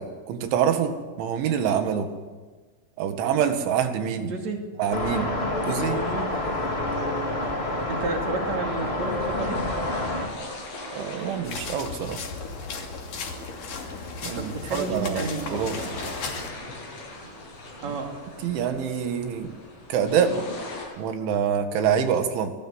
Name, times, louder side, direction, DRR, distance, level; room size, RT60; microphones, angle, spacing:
voice 1, 0.0-2.2 3.0-4.3 4.8-5.4 5.7-6.0 10.9-12.2 14.2-15.8 17.9-18.0 18.4-19.6 19.9-20.5 21.0-22.5, right 8 dB, 85° right, 7 dB, 4.3 m, -26 dB
voice 2, 4.3-4.6 5.9-6.3 7.9-9.6 14.3-16.2 17.8-18.3, right 3 dB, 40° right, 3 dB, 3.7 m, -32 dB
sound 1, 4.9-10.3, left 1 dB, 20° left, 2.0 m, -28 dB
sound 2, 5.6-20.9, left 2 dB, 80° left, 10.0 m, -42 dB
sound 3, 11.4-16.5, left 4 dB, 50° left, 4.0 m, -35 dB
25.5 x 20.0 x 8.0 m, 1.4 s
omnidirectional pair, 5.3 m